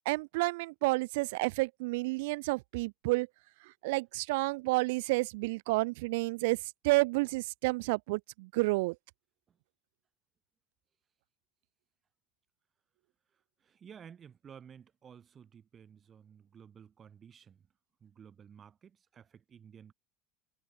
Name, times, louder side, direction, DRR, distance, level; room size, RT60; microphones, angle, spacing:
voice 1, 0.0-3.3 3.8-9.0, right 24 dB, 80° right, 0.7 m, -30 dB
voice 2, 13.6-17.6 18.0-19.9, right 7 dB, 25° right, 3.1 m, -54 dB
cardioid pair, 155°, 0 cm